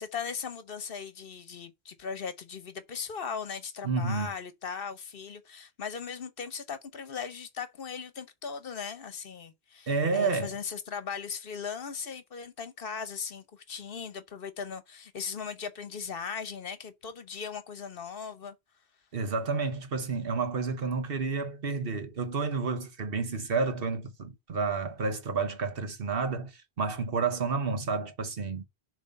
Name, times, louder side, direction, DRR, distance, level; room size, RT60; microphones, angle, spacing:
voice 1, 0.0-18.5, left 6 dB, 60° left, 1.1 m, -38 dB
voice 2, 3.8-4.3 9.9-10.5 19.1-28.7, right 4 dB, 60° right, 1.2 m, -30 dB
7.1 x 3.3 x 5.3 m
omnidirectional pair, 1.1 m